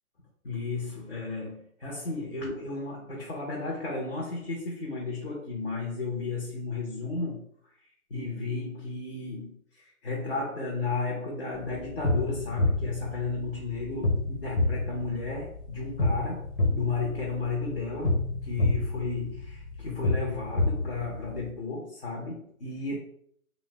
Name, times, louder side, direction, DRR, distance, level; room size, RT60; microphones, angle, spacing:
voice 1, 0.4-7.7 8.1-16.5 16.7-23.0, left 3 dB, 45° left, -3 dB, 0.6 m, -34 dB
sound 1, 11.5-21.5, left 2 dB, 85° left, 1.1 m, -29 dB
2.6 x 2.0 x 3.2 m, 0.64 s
hypercardioid pair, 175°, 45 cm